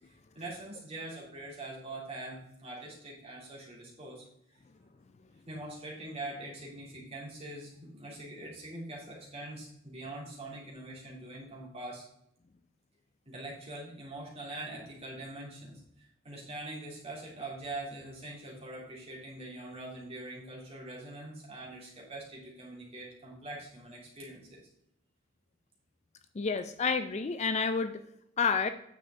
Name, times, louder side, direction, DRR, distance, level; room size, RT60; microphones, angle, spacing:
voice 1, 0.3-4.2 5.5-12.0 13.2-24.6, right 2 dB, 30° right, -4 dB, 2.9 m, -43 dB
voice 2, 26.4-28.0 28.4-28.7, left 5 dB, 30° left, 10 dB, 0.4 m, -29 dB
9.4 x 7.0 x 3.7 m, 0.77 s
head